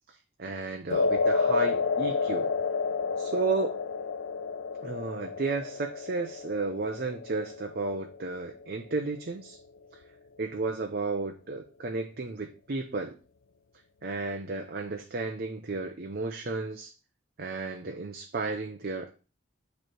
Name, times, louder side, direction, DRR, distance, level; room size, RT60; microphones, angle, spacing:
voice 1, 0.1-2.5 3.2-3.8 4.8-9.6 10.4-13.2 14.0-16.9 17.4-19.1, right 3 dB, 50° right, 3 dB, 0.6 m, -33 dB
sound 1, 0.9-9.2, left 4 dB, 85° left, 0.5 m, -30 dB
9.0 x 3.2 x 4.5 m, 0.33 s
head